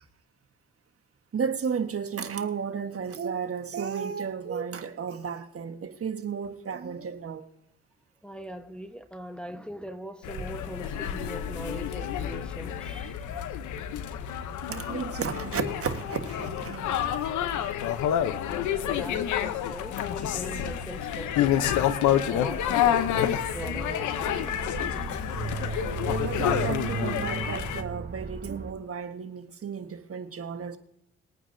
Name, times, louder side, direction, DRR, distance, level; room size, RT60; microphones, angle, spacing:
voice 1, 1.3-7.4 14.7-17.9 25.5-25.8 26.1-30.8, right 6 dB, 50° right, 1.4 m, -33 dB
voice 2, 8.2-13.2 18.5-25.2 30.5-30.6, right 1 dB, 5° left, 1.1 m, -41 dB
sound 1, 10.2-27.8, left 10 dB, 85° left, 0.8 m, -29 dB
sound 2, 22.3-28.7, right 4 dB, 35° right, 1.2 m, -36 dB
21.0 x 9.1 x 2.7 m
supercardioid pair, 55°, 29 cm